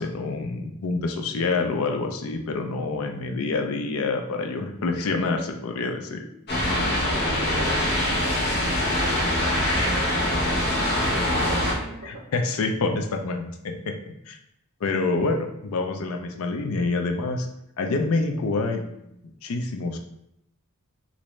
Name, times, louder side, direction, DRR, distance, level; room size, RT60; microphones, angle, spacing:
voice 1, 0.0-6.2 12.0-13.9 14.3-14.4 14.8-17.5 17.8-19.1 19.4-20.0, left 3 dB, 70° left, 4 dB, 0.4 m, -27 dB
sound 1, 6.5-11.7, left 1 dB, 50° left, 0.8 m, -23 dB
voice 2, 7.1-8.4 8.8-12.3, right 1 dB, 45° right, -1 dB, 0.8 m, -39 dB
3.1 x 2.6 x 3.1 m, 0.80 s
head